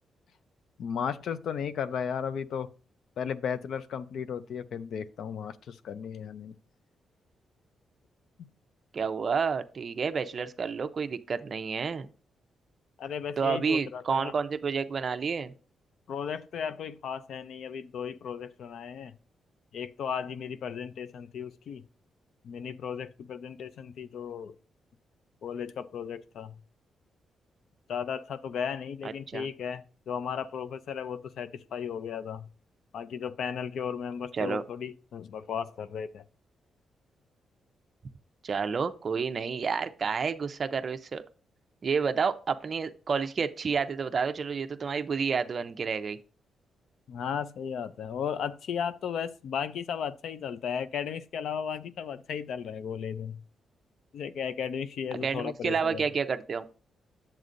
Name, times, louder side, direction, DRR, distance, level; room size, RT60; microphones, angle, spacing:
voice 1, 0.8-2.7 3.2-6.5 8.4-8.5 13.0-14.3 16.1-19.1 19.7-21.8 22.4-24.5 25.4-26.5 27.9-32.5 32.9-36.2 47.1-53.4 54.1-56.0, left 7 dB, 70° left, 0.5 m, -35 dB
voice 2, 8.9-12.1 13.4-15.5 29.3-29.5 34.3-34.6 38.4-41.2 41.8-46.2 55.2-56.7, right 5 dB, 40° right, 0.5 m, -30 dB
9.4 x 7.4 x 2.6 m
wide cardioid pair, 150°, 0 cm